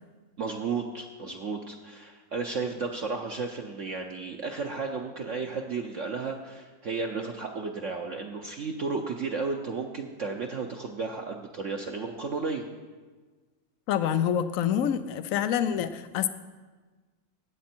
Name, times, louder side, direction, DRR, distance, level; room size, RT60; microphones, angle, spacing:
voice 1, 0.4-12.6, right 4 dB, 55° right, 2 dB, 0.9 m, -33 dB
voice 2, 13.9-16.3, left 9 dB, 85° left, 12 dB, 0.7 m, -26 dB
16.0 x 8.3 x 4.4 m, 1.4 s
omnidirectional pair, 2.0 m